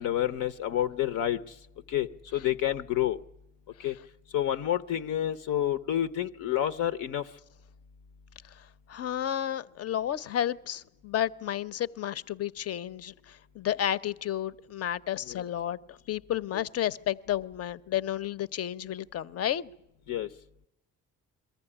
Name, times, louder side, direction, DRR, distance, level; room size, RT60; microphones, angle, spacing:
voice 1, 0.0-1.4 1.9-3.2 3.8-3.9 4.3-7.3 15.3-15.4 16.5-16.6 20.1-20.3, left 12 dB, 80° left, 10 dB, 0.9 m, -29 dB
voice 2, 8.9-19.7, left 11 dB, 55° left, 18 dB, 0.7 m, -32 dB
23.0 x 14.5 x 9.9 m, 0.88 s
cardioid pair, 90°, 30 cm